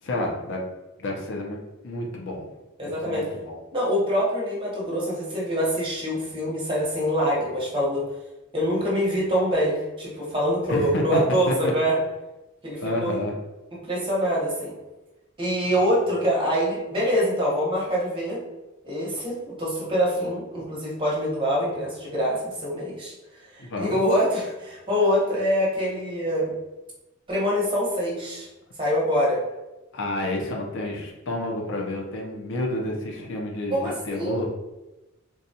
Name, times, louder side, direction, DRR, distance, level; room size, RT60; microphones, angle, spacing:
voice 1, 0.0-0.6 1.0-1.6 1.8-2.5 2.8-3.6 10.7-11.2 11.5-11.7 12.8-13.3 15.6-15.8 23.6-24.0 29.9-34.5, left 1 dB, 60° left, 0 dB, 0.6 m, -30 dB
voice 2, 2.8-3.2 3.7-8.0 8.5-11.9 12.6-13.2 13.8-14.7 15.4-18.4 18.8-23.1 23.5-26.5 27.3-28.5 28.8-29.4 33.7-34.5, equal, 25° right, -5 dB, 1.0 m, -25 dB
3.9 x 2.3 x 2.7 m, 1.0 s
head